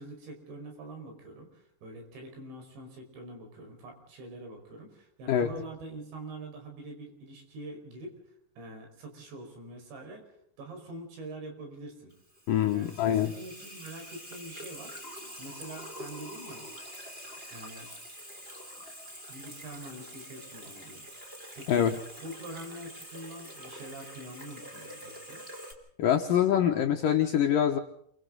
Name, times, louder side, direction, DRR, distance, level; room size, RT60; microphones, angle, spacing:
voice 1, 0.0-8.2 8.6-12.1 12.7-14.9 15.4-16.7 17.5-17.9 19.3-21.1 21.6-21.9 22.2-25.4, right 1 dB, 75° right, 3 dB, 7.5 m, -45 dB
Water tap faucet / Sink (filling or washing), 12.1-25.7, equal, 15° right, 3.0 m, -45 dB
voice 2, 12.5-13.3 21.7-22.0 26.0-27.8, left 9 dB, 75° left, 4 dB, 2.1 m, -25 dB
28.5 x 24.0 x 4.0 m, 0.71 s
omnidirectional pair, 5.2 m